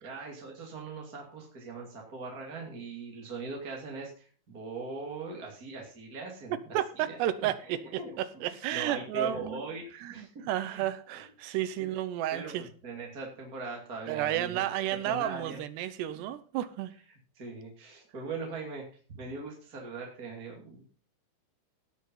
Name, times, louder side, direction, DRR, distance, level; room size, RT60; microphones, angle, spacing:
voice 1, 0.0-6.5 7.1-8.2 8.5-10.8 11.1-11.9 12.3-15.6 17.3-18.8 19.1-20.8, right 3 dB, 25° right, -1 dB, 2.1 m, -41 dB
voice 2, 6.7-7.8 8.2-9.6 10.0-12.6 14.1-16.9, right 12 dB, 75° right, 12 dB, 2.8 m, -32 dB
17.5 x 6.4 x 5.5 m, 0.41 s
omnidirectional pair, 5.5 m